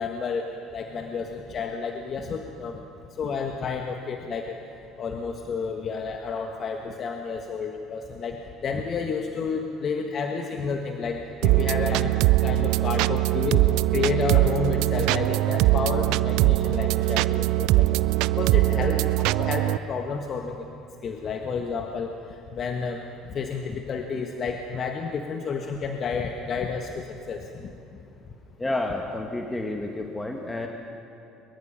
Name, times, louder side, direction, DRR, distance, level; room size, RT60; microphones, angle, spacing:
voice 1, 0.0-2.8 3.2-4.6 5.0-12.1 12.4-13.6 13.9-17.9 18.4-19.0 19.4-20.6 21.0-22.1 22.5-23.0 23.3-27.7, left 5 dB, 45° left, 3 dB, 1.5 m, -30 dB
sound 1, 11.4-19.8, right 18 dB, 65° right, 0.4 m, -22 dB
voice 2, 28.6-30.7, left 2 dB, 15° left, 2 dB, 1.9 m, -30 dB
22.5 x 22.5 x 5.9 m, 2.8 s
hypercardioid pair, 60°, 0 cm